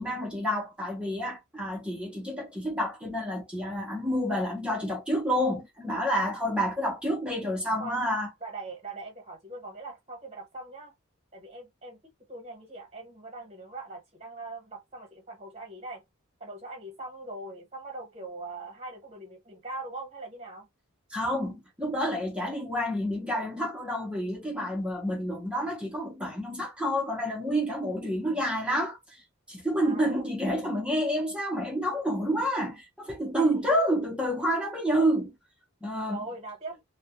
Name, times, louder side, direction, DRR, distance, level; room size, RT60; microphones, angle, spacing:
voice 1, 0.0-8.3 21.1-29.2 29.5-35.4 35.8-36.2, equal, 5° right, 0.6 m, -29 dB
voice 2, 8.4-10.9 11.3-12.0 12.3-16.0 16.4-20.7 29.8-30.3 33.4-34.0 34.4-34.5 36.0-36.8, right 2 dB, 30° right, 1.0 m, -41 dB
2.2 x 2.1 x 2.8 m
head